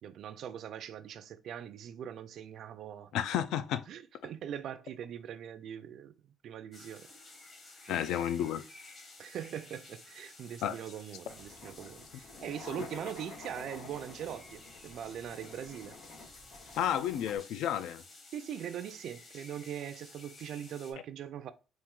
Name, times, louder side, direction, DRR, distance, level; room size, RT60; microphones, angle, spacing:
voice 1, 0.0-3.1 3.9-7.1 7.9-8.2 9.2-16.0 18.3-21.5, right 9 dB, 55° right, 0.4 m, -42 dB
voice 2, 3.1-3.8 7.9-8.6 10.6-10.8 16.8-18.0, left 10 dB, 75° left, 0.4 m, -31 dB
sound 1, 6.7-20.9, left 2 dB, 35° left, 1.0 m, -54 dB
sound 2, 11.3-17.4, left 3 dB, 60° left, 2.1 m, -50 dB
4.4 x 2.5 x 3.7 m
cardioid pair, 150°, 0 cm